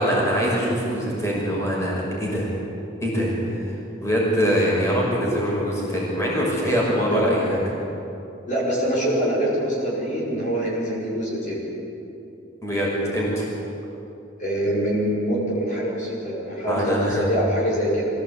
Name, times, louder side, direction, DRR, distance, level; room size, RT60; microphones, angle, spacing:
voice 1, 0.0-2.5 3.0-3.3 3.6-3.7 4.0-7.6 12.6-13.4 16.7-17.2, equal, 15° left, -4 dB, 5.8 m, -23 dB
voice 2, 7.1-7.5 8.5-11.7 14.4-18.1, equal, 40° left, -6 dB, 5.2 m, -24 dB
24.5 x 16.5 x 8.5 m, 2.8 s
head